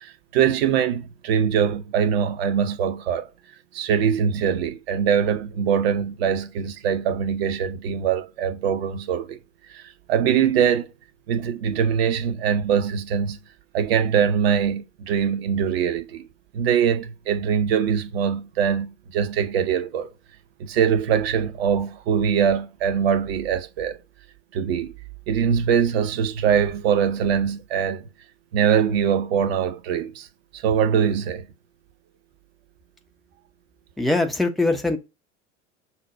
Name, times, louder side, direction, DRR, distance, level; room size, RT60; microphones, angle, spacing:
voice 1, 0.0-3.3 3.7-9.4 9.7-9.8 10.1-10.9 11.3-13.4 13.7-16.3 16.5-20.1 20.6-24.0 24.5-24.9 25.3-28.0 28.5-30.3 30.6-31.5, right 8 dB, 55° right, 0.7 m, -22 dB
voice 2, 34.0-35.0, left 2 dB, ahead, 0.3 m, -22 dB
5.8 x 2.2 x 3.9 m
figure-of-eight pair, 75°, 37 cm